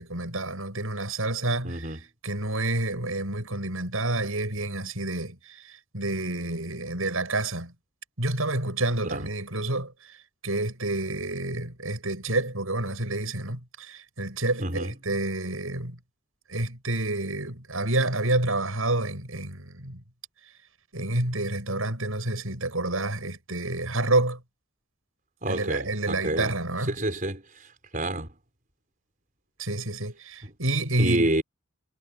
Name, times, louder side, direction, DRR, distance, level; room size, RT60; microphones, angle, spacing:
voice 1, 0.0-1.9 2.2-7.7 8.2-10.2 10.4-16.0 16.5-20.0 20.9-24.4 25.5-26.9 29.6-31.3, right 2 dB, 80° right, 7.0 m, -29 dB
voice 2, 1.6-2.0 9.0-9.3 14.6-14.9 25.4-26.5 26.9-28.3 30.4-30.5 31.0-31.4, right 1 dB, 40° right, 5.5 m, -29 dB
head